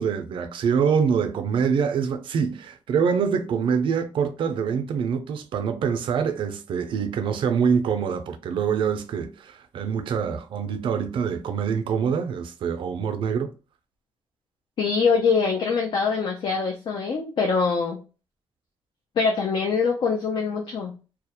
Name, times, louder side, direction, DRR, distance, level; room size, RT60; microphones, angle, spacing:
voice 1, 0.0-13.5, right 6 dB, 75° right, 0.4 m, -25 dB
voice 2, 14.8-18.0 19.2-20.9, left 5 dB, 70° left, 0.5 m, -23 dB
2.2 x 2.0 x 2.8 m
cardioid pair, 75°, 9 cm